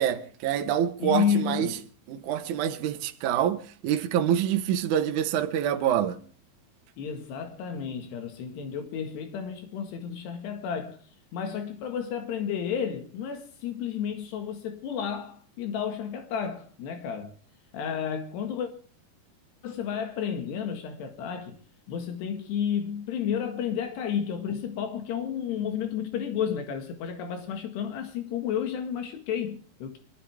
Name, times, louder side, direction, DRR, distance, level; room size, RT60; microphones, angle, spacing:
voice 1, 0.0-1.7 2.1-6.2, right 10 dB, 65° right, 2.1 m, -26 dB
voice 2, 1.0-1.8 7.0-11.0 11.3-17.3 17.7-18.7 19.6-21.6 21.9-30.0, left 8 dB, 80° left, 3.9 m, -31 dB
25.0 x 14.0 x 3.5 m
omnidirectional pair, 4.7 m